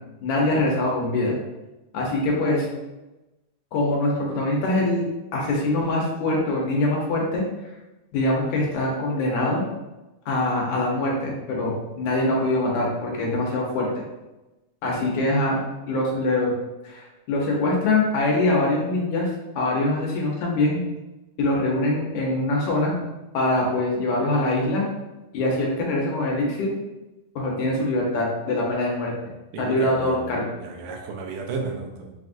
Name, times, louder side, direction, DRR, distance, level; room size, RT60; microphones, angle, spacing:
voice 1, 0.2-1.4 1.9-2.7 3.7-7.4 8.1-9.7 10.3-13.9 14.8-15.6 15.9-16.5 16.8-19.3 19.6-20.8 21.4-22.9 23.3-24.9 25.3-26.7 27.4-29.1 29.6-30.5, left 2 dB, 75° left, -2 dB, 2.1 m, -23 dB
voice 2, 29.5-30.2 30.6-32.1, right 4 dB, 85° right, 1 dB, 2.2 m, -33 dB
5.9 x 2.4 x 2.5 m, 1.0 s
omnidirectional pair, 3.6 m